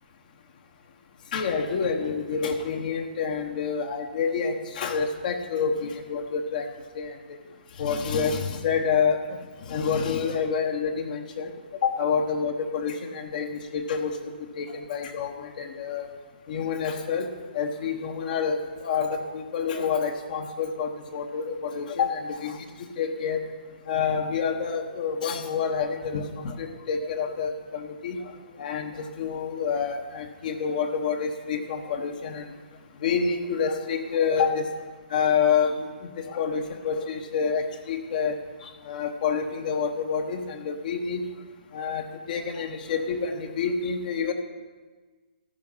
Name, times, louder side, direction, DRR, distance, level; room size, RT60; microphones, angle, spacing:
voice 1, 1.3-6.7 6.9-7.4 7.8-9.4 9.7-11.5 11.8-16.1 16.5-17.3 17.5-23.4 23.9-32.5 33.0-34.7 35.1-38.4 38.6-41.2 41.7-44.3, left 6 dB, 55° left, 4 dB, 1.1 m, -28 dB
14.0 x 7.7 x 5.6 m, 1.4 s
hypercardioid pair, 150°, 5 cm